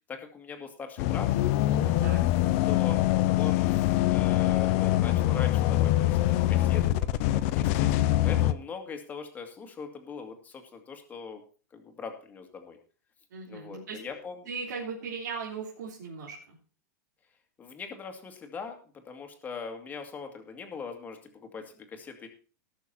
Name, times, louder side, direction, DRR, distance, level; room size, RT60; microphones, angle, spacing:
voice 1, 0.1-1.3 2.4-6.9 7.1-7.9 8.2-11.4 11.7-12.8 13.5-14.5 17.6-22.3, left 5 dB, 15° left, 4 dB, 2.1 m, -41 dB
sound 1, 1.0-8.5, left 14 dB, 45° left, 0.7 m, -24 dB
voice 2, 1.7-2.2 13.3-14.0 14.5-16.6, right 5 dB, 80° right, -4 dB, 3.5 m, -38 dB
18.5 x 6.5 x 4.2 m, 0.39 s
supercardioid pair, 150°, 10 cm